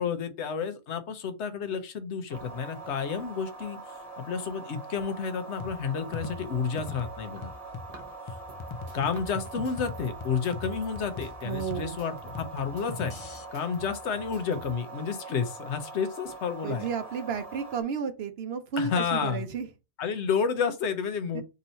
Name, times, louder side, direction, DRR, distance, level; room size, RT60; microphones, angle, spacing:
voice 1, 0.0-3.8 4.2-7.5 8.9-13.1 13.5-16.9 18.8-19.4 20.0-21.4, left 6 dB, 75° left, 1.0 m, -30 dB
sound 1, 2.3-17.8, right 3 dB, 35° right, 1.1 m, -43 dB
sound 2, 5.6-13.4, left 4 dB, 40° left, 0.4 m, -41 dB
sound 3, 8.5-14.7, right 3 dB, 85° right, 1.3 m, -51 dB
voice 2, 11.4-12.0 16.6-19.7 21.3-21.4, right 6 dB, 65° right, 0.9 m, -32 dB
3.9 x 2.7 x 4.3 m
omnidirectional pair, 1.2 m